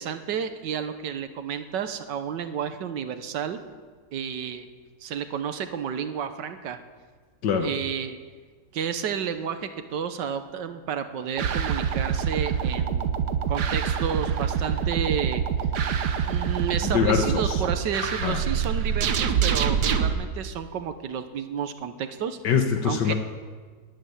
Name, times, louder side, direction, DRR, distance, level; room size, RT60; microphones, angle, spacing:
voice 1, 0.0-3.6 4.1-4.7 5.0-6.8 7.6-8.2 8.7-13.1 13.5-15.4 16.3-22.4 22.8-23.1, right 8 dB, 85° right, 9 dB, 1.7 m, -31 dB
sound 1, 11.4-20.1, right 7 dB, 70° right, 1.5 m, -25 dB
voice 2, 16.8-17.6 18.0-18.4 22.4-23.1, left 7 dB, 80° left, 6 dB, 1.7 m, -24 dB
13.0 x 11.5 x 9.6 m, 1.5 s
omnidirectional pair, 1.9 m